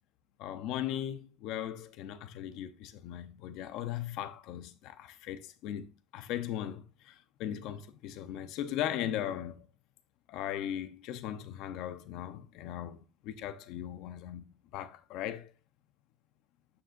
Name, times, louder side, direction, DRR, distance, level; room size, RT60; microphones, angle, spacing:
voice 1, 0.4-9.7 10.3-15.5, left 11 dB, 60° left, 0.7 m, -38 dB
9.3 x 7.2 x 2.5 m
cardioid pair, 170°, 0 cm